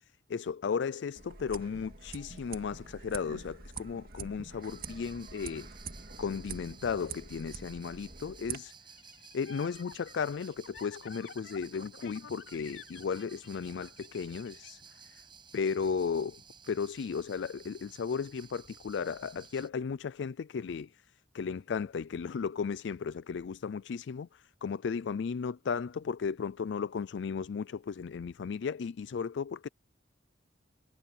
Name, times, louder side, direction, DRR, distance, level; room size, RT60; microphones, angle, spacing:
voice 1, 0.3-5.8 6.2-8.8 9.3-15.2 15.5-16.4 16.7-21.1 21.3-29.7, left 6 dB, 65° left, 0.4 m, -35 dB
sound 1, 1.2-8.6, right 5 dB, 50° right, 2.2 m, -45 dB
sound 2, 4.6-19.7, right 6 dB, 25° right, 5.9 m, -55 dB
sound 3, 8.9-14.7, left 5 dB, 80° left, 3.2 m, -51 dB
head